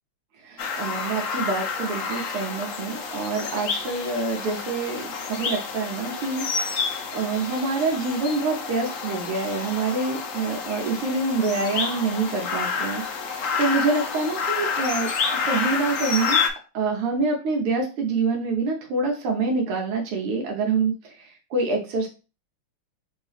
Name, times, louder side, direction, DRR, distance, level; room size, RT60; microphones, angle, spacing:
voice 1, 0.4-6.8 7.1-16.4 16.7-22.1, right 3 dB, 85° right, 1 dB, 1.8 m, -26 dB
sound 1, 0.6-16.5, left 5 dB, 90° left, 0.7 m, -29 dB
5.9 x 2.7 x 3.3 m, 0.34 s
omnidirectional pair, 2.4 m